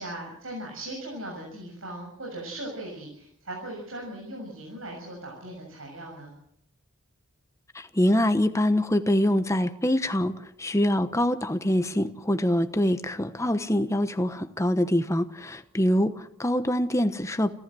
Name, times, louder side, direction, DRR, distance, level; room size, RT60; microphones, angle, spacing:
voice 1, 0.0-6.3, right 1 dB, 75° right, 0 dB, 7.3 m, -38 dB
voice 2, 7.7-10.3 10.6-17.5, left 1 dB, 15° left, 10 dB, 1.1 m, -24 dB
30.0 x 14.0 x 7.7 m, 0.72 s
head